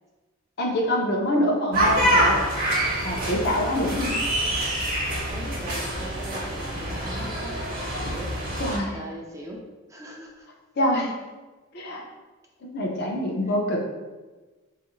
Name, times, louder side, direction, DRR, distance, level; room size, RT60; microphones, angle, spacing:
voice 1, 0.6-2.4 3.0-4.1 8.1-8.2 8.6-9.0 10.8-11.1 11.7-12.0 12.7-13.9, left 1 dB, 50° left, 0 dB, 0.5 m, -25 dB
sound 1, 1.7-8.8, right 1 dB, 45° right, 0.8 m, -26 dB
voice 2, 5.3-7.6 8.1-8.4 8.9-9.6 9.9-10.5, right 1 dB, 15° right, -2 dB, 0.4 m, -39 dB
3.2 x 2.4 x 3.0 m, 1.3 s
head